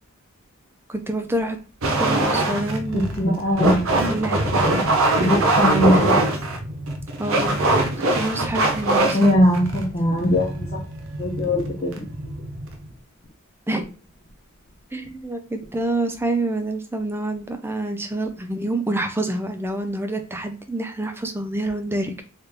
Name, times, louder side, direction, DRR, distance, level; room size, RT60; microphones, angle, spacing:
voice 1, 0.9-1.6 2.0-3.2 4.1-4.4 7.2-7.9 8.1-9.4 13.7-13.9 14.9-22.2, right 1 dB, 10° right, 6 dB, 0.4 m, -27 dB
sound 1, 1.8-12.9, right 2 dB, 65° right, 0.6 m, -22 dB
voice 2, 2.9-4.1 5.1-6.3 9.1-10.8 11.2-12.1, equal, 35° left, -5 dB, 0.8 m, -21 dB
3.2 x 2.3 x 3.3 m, 0.33 s
head